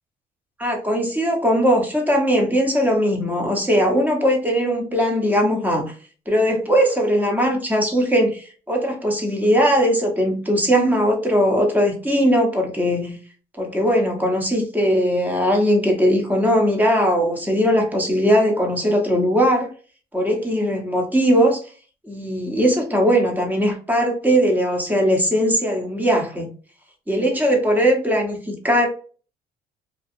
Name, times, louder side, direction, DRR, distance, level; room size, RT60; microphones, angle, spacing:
voice 1, 0.6-5.9 6.3-13.2 13.6-19.7 20.1-21.6 22.0-26.5 27.1-28.9, equal, 10° right, 1 dB, 0.8 m, -19 dB
2.5 x 2.3 x 2.6 m, 0.39 s
cardioid pair, 110°, 17 cm